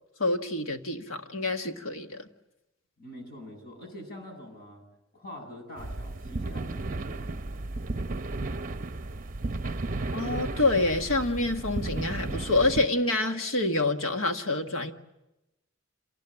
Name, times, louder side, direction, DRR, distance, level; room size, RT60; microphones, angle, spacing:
voice 1, 0.2-2.3 10.1-14.9, left 2 dB, 80° left, 5 dB, 1.7 m, -27 dB
voice 2, 3.0-4.8 5.1-7.5, left 1 dB, 50° left, 3 dB, 7.9 m, -45 dB
sound 1, 5.8-12.9, right 2 dB, 40° right, 0.8 m, -34 dB
27.0 x 19.5 x 8.8 m, 0.96 s
head